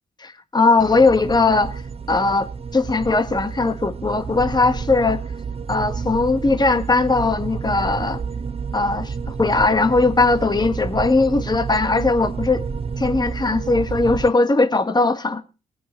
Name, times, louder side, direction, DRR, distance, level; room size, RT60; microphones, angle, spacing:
voice 1, 0.2-1.8 2.1-5.2 5.7-8.2 8.7-12.6 13.0-15.4, left 3 dB, 25° left, 1.8 m, -19 dB
sound 1, 0.8-14.3, right 5 dB, 35° right, 0.7 m, -30 dB
23.0 x 7.8 x 3.1 m
hypercardioid pair, 40°, 17 cm